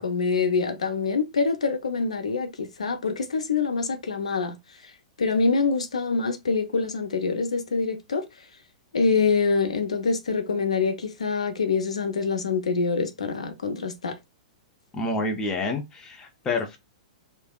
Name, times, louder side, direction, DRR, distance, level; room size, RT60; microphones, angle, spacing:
voice 1, 0.0-4.6 5.2-8.2 8.9-14.1, left 4 dB, 70° left, 0.6 m, -25 dB
voice 2, 14.9-16.8, left 2 dB, 20° left, 0.6 m, -28 dB
3.3 x 2.1 x 2.3 m
figure-of-eight pair, 105°, 4 cm